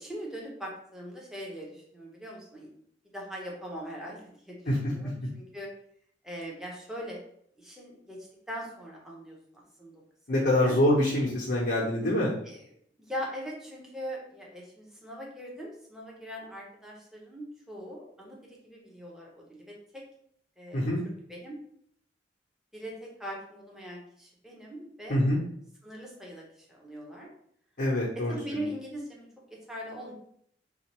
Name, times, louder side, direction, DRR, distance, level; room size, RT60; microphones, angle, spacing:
voice 1, 0.0-2.7 3.1-5.7 6.2-7.2 7.6-9.9 10.3-10.8 12.4-12.7 13.0-19.6 19.9-20.0 20.6-20.9 21.3-21.6 22.7-25.2 25.8-27.3 28.1-30.1, equal, 5° right, -3 dB, 0.9 m, -41 dB
voice 2, 10.3-12.3 20.7-21.0 25.1-25.4 27.8-28.3, left 1 dB, 60° left, -4 dB, 0.8 m, -25 dB
4.1 x 2.5 x 3.0 m, 0.67 s
head